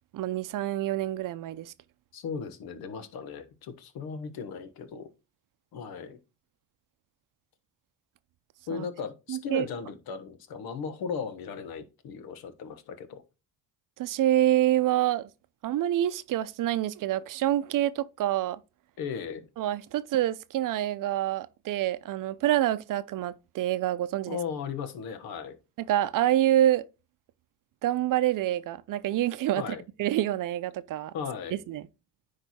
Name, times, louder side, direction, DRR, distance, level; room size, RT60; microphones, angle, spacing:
voice 1, 0.1-1.7 8.7-8.9 9.3-9.7 14.0-15.3 15.6-18.6 19.6-24.4 25.8-26.9 27.8-31.1 31.5-31.9, right 13 dB, 60° right, 0.6 m, -27 dB
voice 2, 2.1-5.1 5.7-6.2 8.7-13.2 19.0-19.5 24.3-25.6 29.5-29.8 31.1-31.6, left 6 dB, 75° left, 1.3 m, -36 dB
9.9 x 3.4 x 4.2 m
cardioid pair, 95°, 37 cm